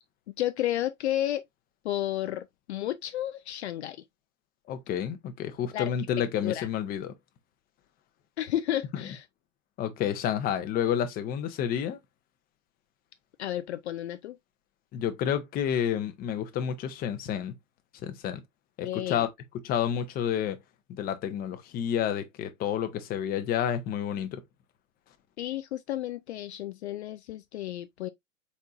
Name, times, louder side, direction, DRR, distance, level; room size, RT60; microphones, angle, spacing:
voice 1, 0.4-1.4 1.8-4.0 5.7-5.9 6.4-6.7 8.4-9.3 13.4-14.4 18.8-19.2 25.4-28.1, left 13 dB, 55° left, 0.5 m, -32 dB
voice 2, 4.7-7.1 9.8-12.0 14.9-17.5 18.0-18.4 18.8-19.3 19.6-20.6 21.0-24.4, left 9 dB, 20° left, 0.8 m, -30 dB
4.3 x 4.2 x 2.4 m
figure-of-eight pair, 110°, 39 cm